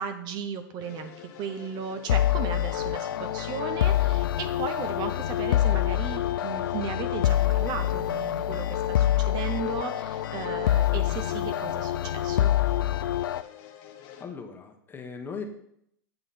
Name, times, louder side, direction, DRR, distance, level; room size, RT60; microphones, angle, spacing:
voice 1, 0.0-12.5, right 6 dB, 40° right, 8 dB, 0.7 m, -36 dB
sound 1, 0.8-14.3, left 10 dB, 50° left, 1.1 m, -48 dB
sound 2, 2.1-13.4, left 12 dB, 75° left, 0.4 m, -26 dB
voice 2, 14.2-15.4, left 5 dB, 20° left, 3 dB, 1.3 m, -38 dB
7.6 x 6.4 x 4.3 m, 0.72 s
hypercardioid pair, 105°, 11 cm